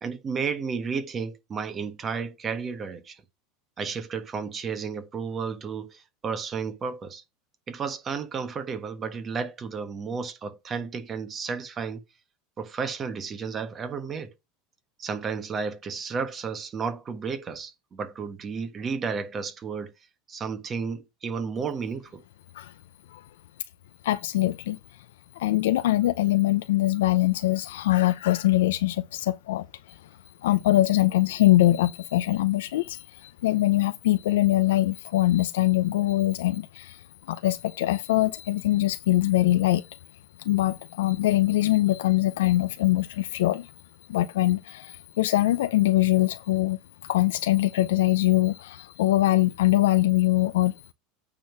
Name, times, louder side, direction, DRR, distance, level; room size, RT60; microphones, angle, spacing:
voice 1, 0.0-3.2 3.8-7.2 7.7-12.0 12.6-14.3 15.0-19.9 20.3-22.2, right 5 dB, 25° right, 1.3 m, -32 dB
voice 2, 24.0-24.8 25.4-29.6 30.4-37.0 37.3-40.0 40.4-43.7 44.1-46.8 47.1-50.7, left 16 dB, 85° left, 0.5 m, -23 dB
8.8 x 3.7 x 6.1 m
supercardioid pair, 130°, 0 cm